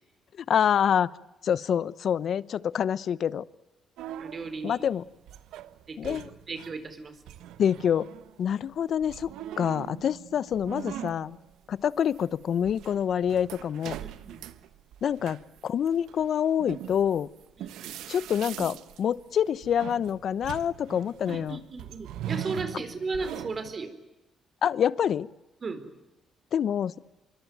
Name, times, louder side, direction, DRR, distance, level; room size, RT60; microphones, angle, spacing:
voice 1, 0.5-1.1 1.4-3.4 4.6-5.0 6.0-6.3 7.6-8.1 8.4-9.3 9.6-11.4 11.7-13.9 15.0-15.4 15.6-17.3 18.1-21.6 24.6-25.3 26.5-26.9, left 8 dB, 60° left, 19 dB, 0.9 m, -26 dB
sound 1, 4.0-6.9 7.2-23.7, right 11 dB, 85° right, 1.3 m, -41 dB
voice 2, 4.2-4.8 5.9-7.2 14.0-14.4 17.6-18.0 21.3-23.9 25.6-25.9, right 3 dB, 40° right, 11 dB, 4.3 m, -36 dB
26.0 x 24.0 x 9.3 m, 0.99 s
cardioid pair, 90°, 0 cm